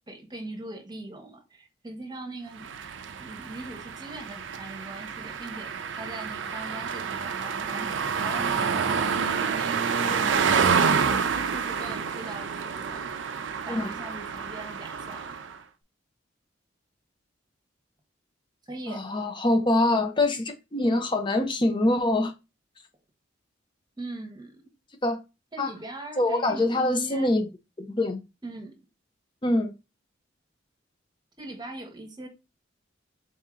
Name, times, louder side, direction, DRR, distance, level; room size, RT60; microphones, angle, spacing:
voice 1, 0.1-2.7 3.2-10.7 11.3-13.2 13.7-15.3 18.7-19.0 24.0-24.6 25.5-27.4 28.4-28.8 31.4-32.3, right 2 dB, 25° right, 1.0 m, -41 dB
sound 1, 2.6-15.6, right 6 dB, 75° right, 0.4 m, -28 dB
voice 2, 18.9-22.3 25.0-25.2 25.6-25.7 26.2-27.5 27.8-28.2 29.4-29.7, left 2 dB, 25° left, 0.7 m, -24 dB
4.1 x 2.7 x 3.6 m
head